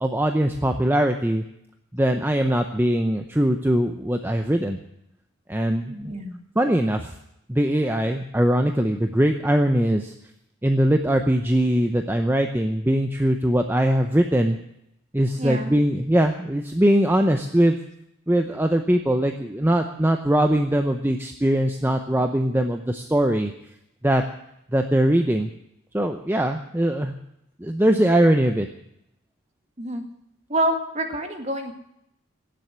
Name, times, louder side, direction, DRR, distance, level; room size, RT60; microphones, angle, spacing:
voice 1, 0.0-1.4 1.9-4.8 5.5-6.1 6.6-7.1 7.5-10.1 10.6-14.6 15.1-17.8 18.3-23.5 24.0-24.2 24.7-25.5 25.9-27.2 27.6-28.7, right 1 dB, 10° right, 5 dB, 0.7 m, -21 dB
voice 2, 5.9-6.4 15.4-15.8 29.8-30.0 30.5-31.7, right 1 dB, 30° right, 5 dB, 1.9 m, -27 dB
17.0 x 7.7 x 9.8 m, 0.79 s
head